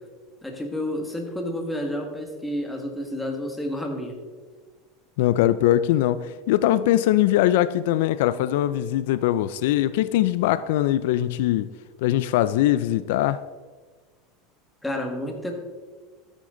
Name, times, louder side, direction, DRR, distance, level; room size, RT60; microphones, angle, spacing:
voice 1, 0.4-4.2 14.8-15.5, left 1 dB, 5° left, 1.8 m, -30 dB
voice 2, 5.2-11.7 12.0-13.4, left 13 dB, 75° left, 0.4 m, -21 dB
13.5 x 8.9 x 3.8 m
supercardioid pair, 140°, 0 cm